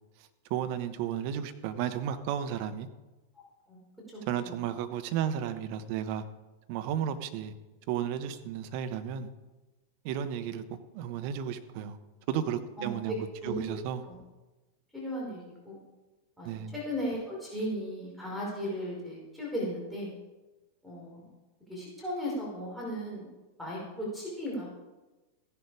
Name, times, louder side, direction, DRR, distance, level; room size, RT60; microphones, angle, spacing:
voice 1, 0.5-2.9 4.3-6.2 6.7-7.5 7.9-9.3 10.0-12.0 12.3-13.2 13.4-14.0 16.4-16.7, right 9 dB, 45° right, 1.2 m, -33 dB
voice 2, 4.1-4.6 12.8-13.1 13.4-13.8 14.0-14.1 14.9-15.8 16.4-20.1 20.8-21.3 21.7-23.2 23.6-24.7, equal, ahead, 4.9 m, -36 dB
15.5 x 10.5 x 4.9 m
figure-of-eight pair, 90°, 0 cm